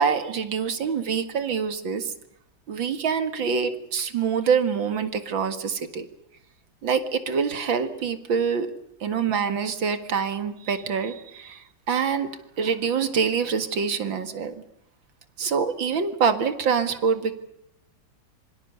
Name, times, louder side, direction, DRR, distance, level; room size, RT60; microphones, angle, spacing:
voice 1, 0.0-2.1 2.7-6.1 6.8-8.7 9.0-12.3 12.6-14.5 15.4-17.4, right 6 dB, 85° right, 10 dB, 2.6 m, -25 dB
26.5 x 24.0 x 6.8 m, 0.79 s
omnidirectional pair, 2.1 m